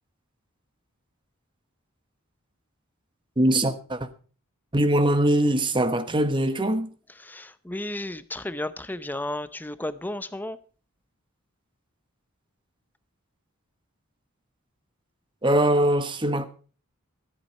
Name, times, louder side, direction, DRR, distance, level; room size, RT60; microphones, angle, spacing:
voice 1, 3.4-4.1 4.7-6.9 15.4-16.5, right 1 dB, 20° right, 1.0 m, -22 dB
voice 2, 7.2-10.6, left 1 dB, 10° left, 0.6 m, -33 dB
13.5 x 8.5 x 5.4 m
head